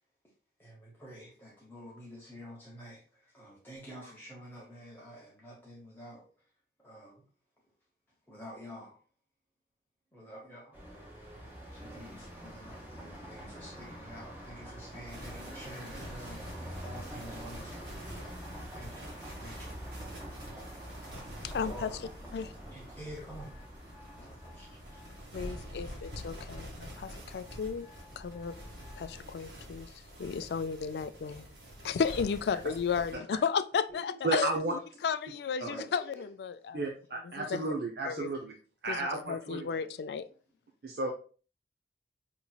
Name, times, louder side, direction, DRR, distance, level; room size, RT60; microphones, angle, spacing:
voice 1, 0.6-6.5 6.8-7.3 8.3-9.0 10.1-11.3 11.7-18.5 18.7-20.1 20.5-20.8 21.5-22.0 22.7-23.5 24.2-25.0 33.9-34.4 35.6-36.3, equal, 10° left, 0.9 m, -49 dB
sound 1, 10.7-29.2, equal, 10° right, 1.1 m, -46 dB
sound 2, 15.0-33.1, equal, 85° right, 1.5 m, -47 dB
voice 2, 21.4-21.9 22.3-22.5 25.3-27.9 28.2-28.5 29.0-29.9 30.2-31.5 31.8-36.0 36.4-36.9 37.2-37.7 38.0-38.3 38.9-40.2, left 6 dB, 70° left, 0.3 m, -34 dB
voice 3, 34.2-34.7 35.6-35.7 36.7-38.5 38.8-39.8 40.8-41.1, right 2 dB, 60° right, 0.6 m, -33 dB
5.3 x 2.9 x 2.3 m
head